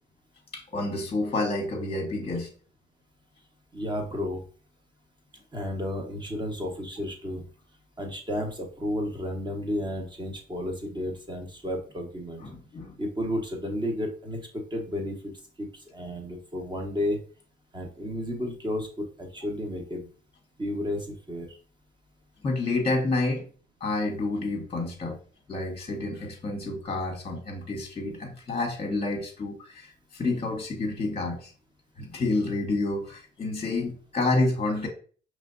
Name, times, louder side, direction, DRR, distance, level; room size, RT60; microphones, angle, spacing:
voice 1, 0.5-2.5 12.4-12.9 22.4-23.5 23.8-25.2 25.5-31.5 32.0-34.9, left 2 dB, 30° left, 2 dB, 1.0 m, -29 dB
voice 2, 3.7-4.4 5.5-7.4 8.0-12.4 13.0-14.4 14.7-17.2 17.7-20.1 20.6-21.6, left 1 dB, 25° right, 2 dB, 1.1 m, -32 dB
5.0 x 3.2 x 2.5 m, 0.41 s
cardioid pair, 90°, 20 cm